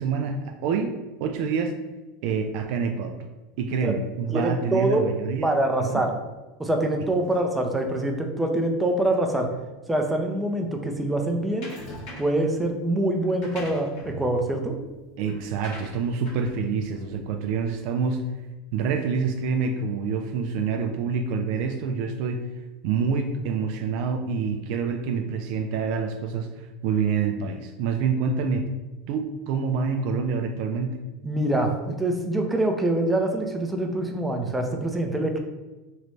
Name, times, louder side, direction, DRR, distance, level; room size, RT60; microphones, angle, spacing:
voice 1, 0.0-1.8 2.2-3.2 3.6-6.0 15.2-18.2 18.7-22.4 22.8-28.7 29.1-31.0, right 5 dB, 65° right, 6 dB, 0.3 m, -27 dB
voice 2, 4.3-5.0 5.4-6.1 6.6-9.5 9.9-11.7 12.2-14.7 31.2-35.4, right 1 dB, 10° right, 3 dB, 0.5 m, -25 dB
sound 1, 11.6-12.5 13.2-17.9, right 1 dB, 65° left, 1.4 m, -42 dB
3.1 x 2.5 x 3.2 m, 1.2 s
supercardioid pair, 105°, 0 cm